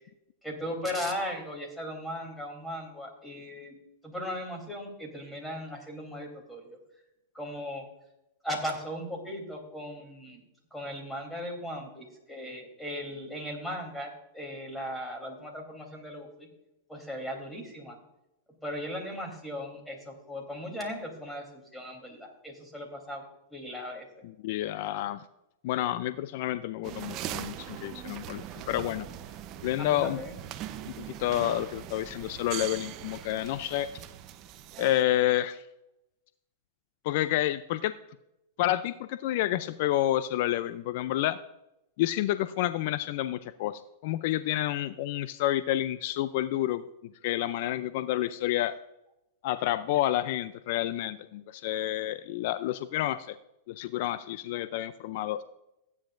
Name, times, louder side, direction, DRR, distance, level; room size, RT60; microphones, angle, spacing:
voice 1, 0.4-3.7 4.0-6.8 7.3-7.8 8.4-10.4 10.7-16.5 16.9-18.0 18.6-23.2 23.5-24.1 29.8-30.4, equal, 5° left, 2 dB, 3.3 m, -37 dB
voice 2, 24.4-25.2 25.6-29.1 29.6-30.2 30.9-33.9 34.8-35.6 37.0-37.9 38.6-41.4 42.0-46.8 47.2-48.7 49.4-53.4 53.7-55.4, left 14 dB, 60° left, 13 dB, 0.4 m, -29 dB
sound 1, 26.8-35.0, right 11 dB, 40° right, 0.8 m, -41 dB
15.5 x 9.5 x 2.6 m, 0.87 s
hypercardioid pair, 125°, 0 cm